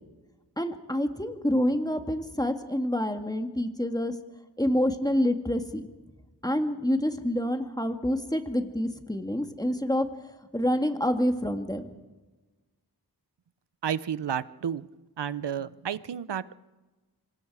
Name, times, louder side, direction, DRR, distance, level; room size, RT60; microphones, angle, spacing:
voice 1, 0.6-4.1 4.6-5.8 6.4-10.1 10.5-11.9, equal, 10° left, 6 dB, 1.9 m, -27 dB
voice 2, 13.8-14.9 15.2-16.6, right 8 dB, 85° right, 17 dB, 0.7 m, -31 dB
26.0 x 21.0 x 4.8 m, 1.2 s
wide cardioid pair, 65°, 41 cm